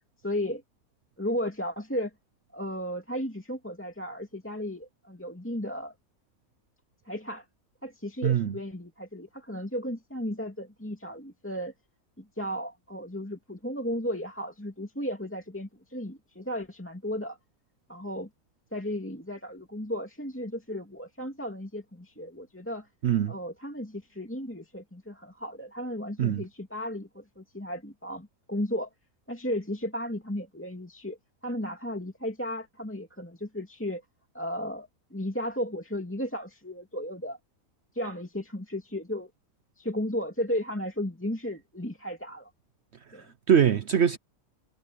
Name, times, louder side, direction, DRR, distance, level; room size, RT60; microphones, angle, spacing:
voice 1, 0.2-0.6 1.2-2.1 2.5-5.9 7.1-7.5 7.8-11.7 12.2-17.4 17.9-18.3 18.7-22.9 23.3-28.9 29.3-31.2 31.4-34.0 34.3-37.4 37.9-39.3 39.8-42.5 43.1-43.3, equal, 10° left, 2.3 m, -34 dB
voice 2, 8.2-8.5 23.0-23.3 26.2-26.4 43.5-44.2, right 8 dB, 55° right, 0.9 m, -22 dB
omnidirectional pair, 1.5 m